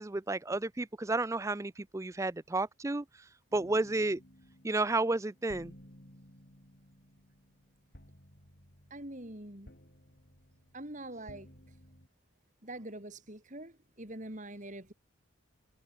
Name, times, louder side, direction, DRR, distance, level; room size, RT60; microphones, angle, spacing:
voice 1, 0.0-3.0 3.5-4.2 4.6-5.7, right 2 dB, 15° right, 0.4 m, -31 dB
sound 1, 3.5-12.1, equal, 50° left, 6.1 m, -57 dB
voice 2, 8.9-9.7 10.7-11.5 12.6-14.9, right 1 dB, 35° right, 3.8 m, -44 dB
head